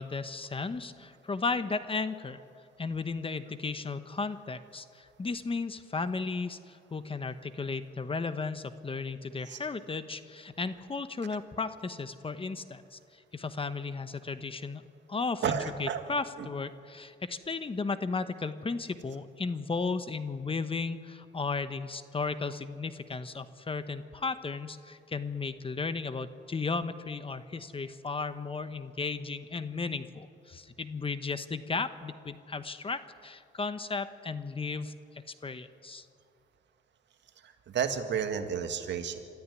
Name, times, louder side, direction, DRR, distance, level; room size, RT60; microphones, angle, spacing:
voice 1, 0.0-2.4 2.8-14.8 15.1-35.0 35.4-36.1, left 4 dB, 25° left, 12 dB, 1.1 m, -35 dB
voice 2, 15.4-16.0 16.4-16.5 37.7-39.2, right 7 dB, 65° right, 7 dB, 2.0 m, -31 dB
26.0 x 13.5 x 9.8 m, 2.4 s
cardioid pair, 90°, 20 cm